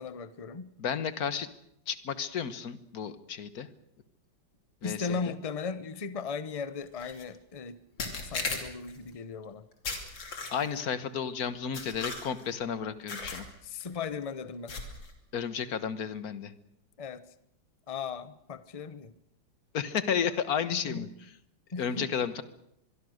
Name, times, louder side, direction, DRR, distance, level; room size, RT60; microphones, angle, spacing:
voice 1, 0.0-0.7 4.8-7.8 8.2-9.6 13.6-14.7 17.0-17.2 17.9-19.1 20.7-21.1 21.7-22.1, left 5 dB, 30° left, 14 dB, 0.7 m, -37 dB
voice 2, 0.8-1.5 1.9-3.7 4.8-5.3 10.5-13.5 15.3-16.5 19.7-21.1 21.8-22.4, left 7 dB, 55° left, 13 dB, 1.6 m, -32 dB
sound 1, 7.0-7.2 8.0-9.0 9.8-10.8 11.7-12.5 13.1-13.5 13.8-14.0 14.7-15.1, left 3 dB, 70° left, 3.6 m, -37 dB
24.0 x 23.0 x 6.5 m, 0.75 s
omnidirectional pair, 2.1 m